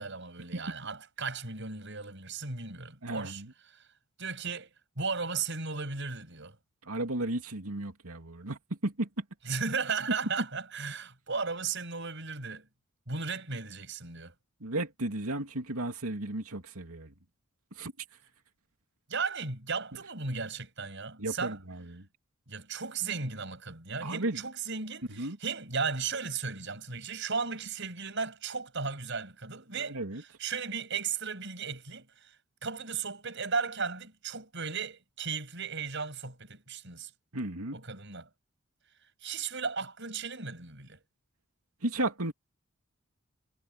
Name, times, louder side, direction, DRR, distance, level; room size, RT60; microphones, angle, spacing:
voice 1, 0.0-3.4 3.7-3.8 4.2-4.7 5.0-6.6 9.4-12.7 13.1-14.3 19.1-21.6 22.5-32.3 32.6-37.1 37.7-38.3 39.2-41.0, right 5 dB, 55° right, 7.5 m, -35 dB
voice 2, 3.0-3.5 6.9-9.2 14.6-17.1 17.8-17.9 21.2-22.0 24.0-24.4 25.2-25.4 29.7-30.2 37.3-37.8 41.8-42.3, right 2 dB, 85° right, 2.8 m, -34 dB
head